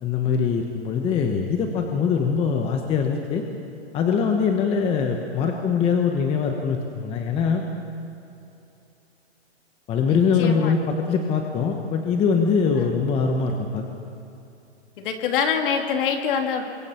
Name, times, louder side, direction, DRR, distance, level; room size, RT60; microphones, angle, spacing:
voice 1, 0.0-3.4 3.9-7.6 9.9-13.8, left 6 dB, 15° left, 3 dB, 1.1 m, -22 dB
voice 2, 10.1-10.8 12.8-12.9 15.0-16.7, left 7 dB, 50° left, 4 dB, 2.7 m, -25 dB
28.5 x 23.5 x 4.5 m, 2.8 s
hypercardioid pair, 150°, 34 cm